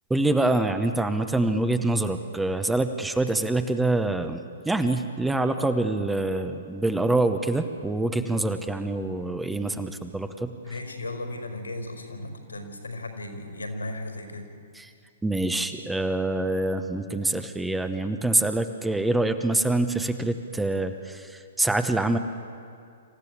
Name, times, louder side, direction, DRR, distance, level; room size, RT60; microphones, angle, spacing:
voice 1, 0.1-10.5 14.8-14.9 15.2-22.2, right 2 dB, 5° right, 8 dB, 0.9 m, -25 dB
voice 2, 10.6-14.5, left 2 dB, 85° left, 4 dB, 4.8 m, -36 dB
26.5 x 15.0 x 8.6 m, 2.4 s
figure-of-eight pair, 115°, 0 cm